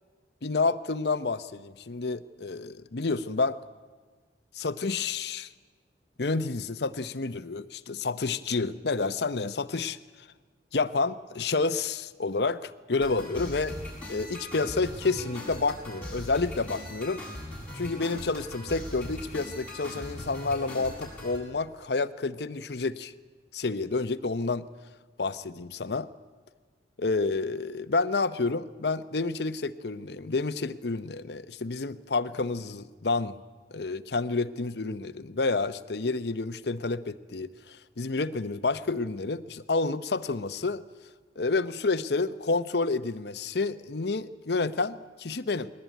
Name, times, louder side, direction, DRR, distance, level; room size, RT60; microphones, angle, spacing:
voice 1, 0.4-3.6 4.5-5.5 6.2-10.0 10.7-13.8 14.1-17.2 17.7-23.1 23.5-24.7 25.2-26.1 27.0-33.3 33.7-40.8 41.4-45.7, left 3 dB, 65° left, 12 dB, 0.8 m, -29 dB
sound 1, 13.0-21.4, left 1 dB, 5° left, 7.3 m, -40 dB
21.0 x 18.5 x 9.2 m, 1.4 s
head